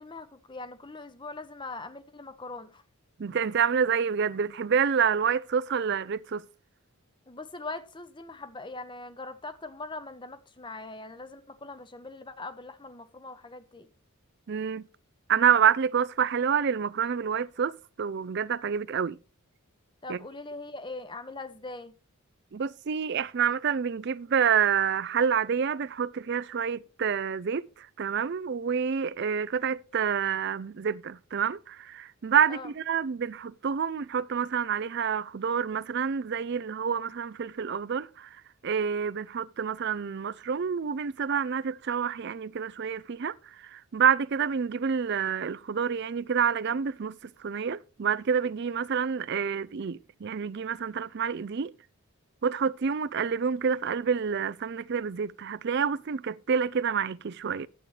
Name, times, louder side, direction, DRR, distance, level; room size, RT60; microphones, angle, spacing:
voice 1, 0.0-2.8 7.3-13.9 20.0-21.9 32.5-32.7, left 3 dB, 20° left, 0.8 m, -41 dB
voice 2, 3.2-6.4 14.5-14.8 15.3-17.7 18.0-19.2 20.1-20.2 22.5-27.6 28.0-38.3 38.6-43.3 43.7-47.2 47.4-51.7 52.4-57.7, right 7 dB, 50° right, 0.4 m, -28 dB
11.5 x 8.5 x 3.3 m
head